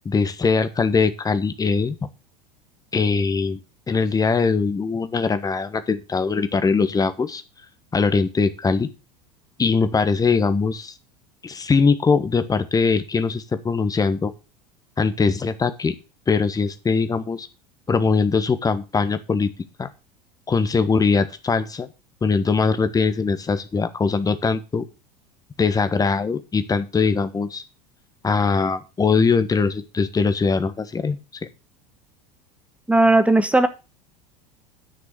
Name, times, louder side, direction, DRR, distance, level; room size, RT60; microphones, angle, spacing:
voice 1, 0.0-2.0 2.9-3.6 3.9-7.4 7.9-8.9 9.6-10.9 11.4-14.3 15.0-15.9 16.3-17.5 17.9-19.5 19.8-19.9 20.5-21.9 22.2-24.8 25.6-27.6 28.2-31.5, left 4 dB, 15° left, 11 dB, 1.3 m, -21 dB
voice 2, 32.9-33.7, right 2 dB, 5° right, 10 dB, 1.5 m, -16 dB
10.5 x 6.1 x 6.1 m, 0.30 s
figure-of-eight pair, 80°, 21 cm